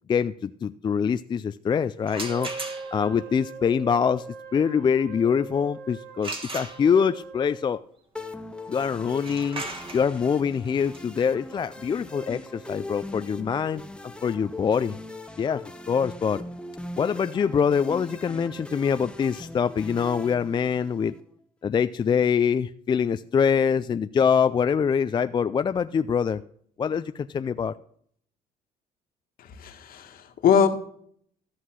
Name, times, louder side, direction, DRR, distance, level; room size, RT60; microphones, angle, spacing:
voice 1, 0.1-2.5 2.9-4.3 4.5-7.8 8.7-9.6 9.9-15.0 15.4-16.4 17.0-21.1 21.6-26.4 26.8-27.7, left 7 dB, 25° left, 11 dB, 0.4 m, -24 dB
sound 1, 2.0-3.2 6.2-7.2 9.1-14.8, right 2 dB, 30° right, 1.6 m, -39 dB
Wind instrument woodwind instrument, 2.2-7.8, right 4 dB, 70° right, 1.5 m, -41 dB
sound 2, 8.2-21.2, left 1 dB, 5° left, 0.8 m, -40 dB
voice 2, 29.4-30.7, left 8 dB, 60° left, 6 dB, 1.7 m, -22 dB
14.0 x 5.7 x 6.3 m, 0.62 s
cardioid pair, 110°, 17 cm